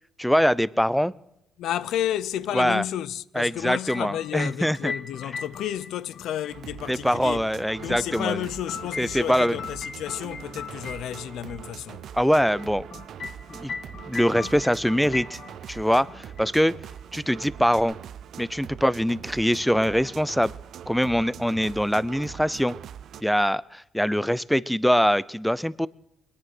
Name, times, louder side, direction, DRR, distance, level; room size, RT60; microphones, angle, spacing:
voice 1, 0.2-1.1 2.5-2.8 3.3-4.9 6.9-8.4 9.0-9.6 12.1-12.9 13.6-13.7 14.0-15.4 15.7-16.7 17.1-17.9 18.4-20.5 20.9-22.8 23.2-25.9, equal, ahead, 0.5 m, -23 dB
voice 2, 1.6-7.5 7.8-12.1, left 11 dB, 80° left, 0.5 m, -31 dB
sound 1, 3.6-6.6 7.8-11.6 12.6-15.8 16.1-16.5 17.8-17.9, left 5 dB, 55° left, 1.7 m, -38 dB
sound 2, 6.5-23.2, right 9 dB, 70° right, 0.6 m, -42 dB
21.5 x 9.9 x 6.1 m
cardioid pair, 90°, 0 cm